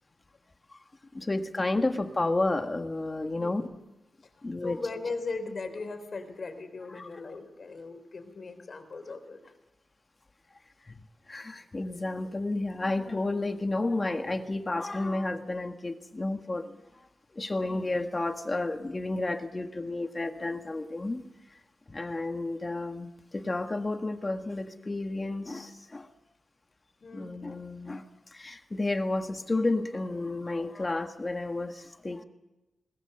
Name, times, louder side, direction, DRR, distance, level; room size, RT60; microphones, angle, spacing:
voice 1, 1.1-3.6 4.4-4.8 7.0-7.1 10.9-11.0 11.3-16.7 17.3-21.2 21.9-26.1 27.1-28.0 28.3-32.2, left 2 dB, 25° left, 7 dB, 1.6 m, -31 dB
voice 2, 3.3-3.8 4.2-9.4 27.0-27.5, left 3 dB, 50° left, 8 dB, 3.6 m, -39 dB
21.5 x 20.0 x 6.7 m, 1.0 s
wide cardioid pair, 125°, 0 cm